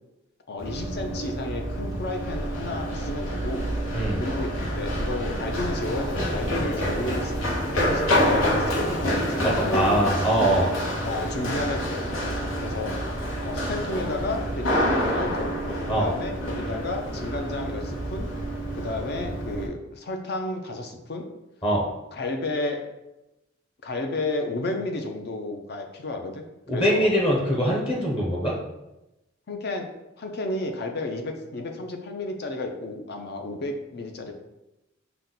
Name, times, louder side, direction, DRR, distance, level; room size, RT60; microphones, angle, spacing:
voice 1, 0.5-3.6 4.2-7.3 7.8-9.0 9.4-10.0 11.0-12.0 12.6-13.0 13.4-15.5 15.9-18.3 18.7-21.3 22.1-22.9 23.8-26.4 26.7-27.1 29.5-34.3, left 2 dB, 55° left, 3 dB, 0.6 m, -32 dB
Run, 0.6-19.7, equal, 85° left, 1.0 m, -28 dB
voice 2, 9.7-10.7 15.9-16.1 21.6-21.9 26.7-28.6, equal, 30° left, -3 dB, 0.9 m, -22 dB
5.8 x 2.2 x 3.9 m, 0.94 s
head